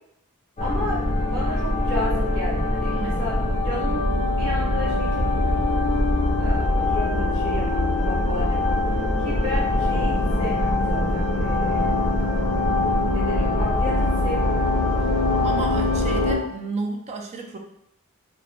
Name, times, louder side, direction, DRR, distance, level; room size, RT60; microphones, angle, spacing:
sound 1, 0.6-16.4, left 2 dB, 30° left, 0.5 m, -22 dB
voice 1, 0.6-4.0 4.4-5.6 6.4-12.1 13.0-14.7, left 1 dB, 60° right, -6 dB, 1.2 m, -33 dB
voice 2, 2.9-3.2 15.4-17.6, right 3 dB, 30° right, 3 dB, 0.3 m, -32 dB
2.4 x 2.1 x 3.0 m, 0.76 s
head